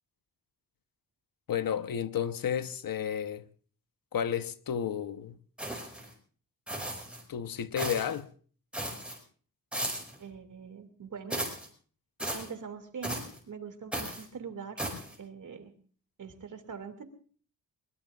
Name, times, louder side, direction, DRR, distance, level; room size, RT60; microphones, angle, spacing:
voice 1, 1.5-3.5 4.1-5.4 7.3-8.3, left 8 dB, 70° left, 1.1 m, -32 dB
sound 1, 5.6-6.1 6.7-7.2 7.8-8.2 8.7-9.2 9.7-10.2 11.3-11.7 12.2-12.5 13.0-13.4 13.9-14.2 14.8-15.1, right 1 dB, 5° right, 5.2 m, -36 dB
voice 2, 10.2-11.5 12.3-14.8 15.2-15.7 16.2-17.0, right 6 dB, 55° right, 2.6 m, -43 dB
22.0 x 22.0 x 2.5 m
wide cardioid pair, 120°, 36 cm